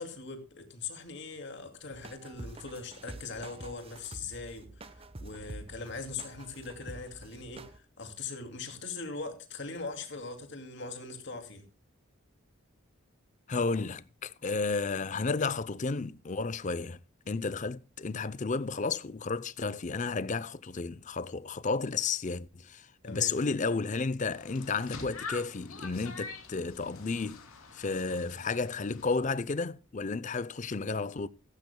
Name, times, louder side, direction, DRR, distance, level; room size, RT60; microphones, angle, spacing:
voice 1, 0.0-11.6 23.0-23.4, left 4 dB, 55° left, 2.5 m, -41 dB
sound 1, 1.9-7.8, right 2 dB, 25° right, 0.8 m, -47 dB
voice 2, 13.5-17.0 17.3-27.4 27.7-31.3, left 4 dB, 35° left, 0.5 m, -32 dB
sound 2, 24.3-29.2, left 4 dB, 85° left, 3.0 m, -45 dB
16.0 x 14.0 x 2.2 m
head